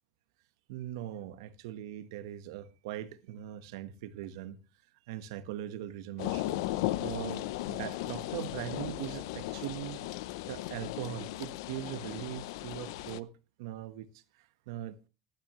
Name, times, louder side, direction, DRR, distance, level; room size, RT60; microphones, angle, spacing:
voice 1, 0.7-4.6 5.1-6.6 7.0-10.1 10.4-13.3 13.6-15.0, right 12 dB, 70° right, 1.3 m, -41 dB
sound 1, 6.2-13.2, left 16 dB, 65° left, 0.6 m, -36 dB
15.0 x 12.0 x 3.1 m
supercardioid pair, 170°, 2 cm